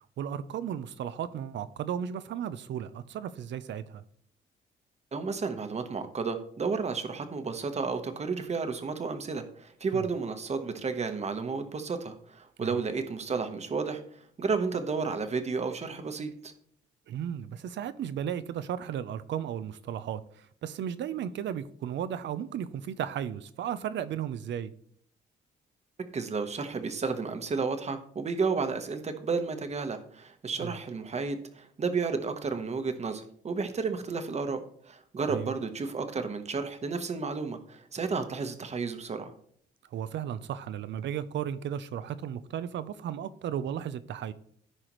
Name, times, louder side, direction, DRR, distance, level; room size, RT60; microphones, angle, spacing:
voice 1, 0.2-4.0 9.9-10.0 12.6-12.8 17.1-24.7 30.6-30.7 35.3-35.5 39.9-44.3, right 9 dB, 65° right, 0.5 m, -35 dB
voice 2, 5.1-14.0 14.4-16.5 26.1-39.3, right 4 dB, 35° right, 1.0 m, -32 dB
14.0 x 4.9 x 3.1 m
cardioid pair, 90°, 20 cm